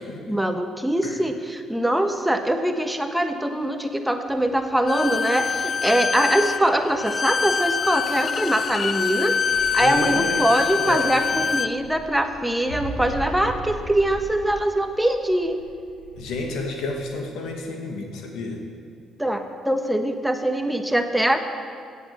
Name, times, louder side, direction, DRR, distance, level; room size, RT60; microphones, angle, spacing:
voice 1, 0.3-9.4 9.7-15.6 19.2-21.4, right 1 dB, 5° right, 6 dB, 1.3 m, -23 dB
Bowed string instrument, 4.9-11.7, left 6 dB, 45° left, 0.5 m, -25 dB
sound 1, 9.2-17.4, right 1 dB, 85° left, 4.2 m, -39 dB
voice 2, 9.8-10.4 10.8-11.4 16.2-18.6, left 2 dB, 65° left, 2 dB, 2.1 m, -31 dB
15.5 x 8.4 x 7.6 m, 2.2 s
hypercardioid pair, 50°, 0 cm